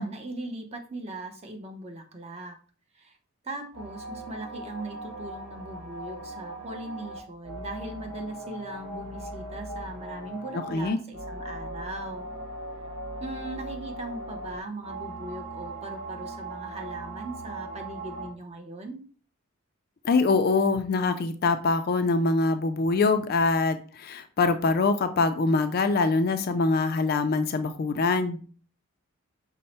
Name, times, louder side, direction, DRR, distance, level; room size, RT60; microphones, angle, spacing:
voice 1, 0.0-2.6 2.9-3.2 3.4-12.3 13.2-19.0, right 2 dB, 30° right, 3 dB, 0.6 m, -39 dB
sound 1, 3.7-18.3, right 1 dB, 85° right, 1.1 m, -39 dB
voice 2, 10.5-11.0 20.0-28.4, left 3 dB, 45° left, 9 dB, 0.3 m, -24 dB
5.4 x 2.0 x 4.2 m, 0.40 s
head